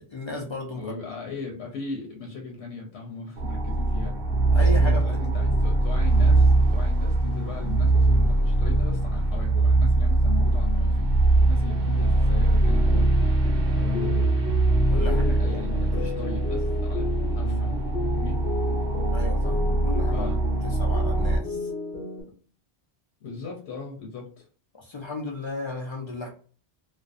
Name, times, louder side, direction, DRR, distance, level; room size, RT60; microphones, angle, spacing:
voice 1, 0.0-1.0 4.5-5.0 14.9-15.2 15.5-15.7 19.1-21.7 24.7-26.3, left 2 dB, 50° left, 0 dB, 0.3 m, -34 dB
voice 2, 0.8-4.1 4.6-13.1 13.8-14.3 14.9-17.7 18.2-18.4 20.1-20.4 23.2-24.5, left 3 dB, 90° left, 0 dB, 0.9 m, -38 dB
sound 1, 3.4-21.4, right 2 dB, 65° right, 0.7 m, -22 dB
sound 2, 12.6-22.2, left 3 dB, 65° left, 1.1 m, -34 dB
2.5 x 2.1 x 2.4 m, 0.40 s
omnidirectional pair, 1.1 m